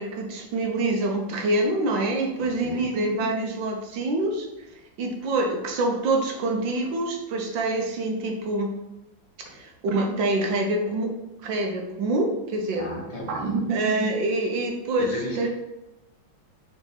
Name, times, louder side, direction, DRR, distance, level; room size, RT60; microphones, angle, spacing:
voice 1, 0.0-4.5 5.0-8.7 9.5-11.1 11.4-12.8 13.3-15.5, right 2 dB, 85° right, 2 dB, 1.7 m, -26 dB
voice 2, 2.4-2.9 12.8-13.6 15.0-15.5, equal, 75° left, -2 dB, 2.2 m, -35 dB
6.0 x 4.3 x 4.0 m, 0.99 s
omnidirectional pair, 2.0 m